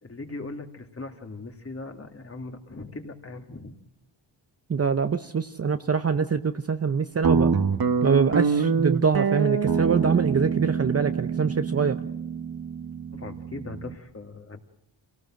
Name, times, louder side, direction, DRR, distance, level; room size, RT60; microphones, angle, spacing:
voice 1, 0.0-3.8 13.1-14.6, left 3 dB, 30° left, 5 dB, 2.3 m, -39 dB
voice 2, 4.7-7.5 8.0-12.0, right 6 dB, 35° right, 9 dB, 0.8 m, -24 dB
Guitar, 7.2-13.9, right 6 dB, 55° right, 1.5 m, -25 dB
27.0 x 18.0 x 7.6 m, 0.82 s
wide cardioid pair, 90°, 44 cm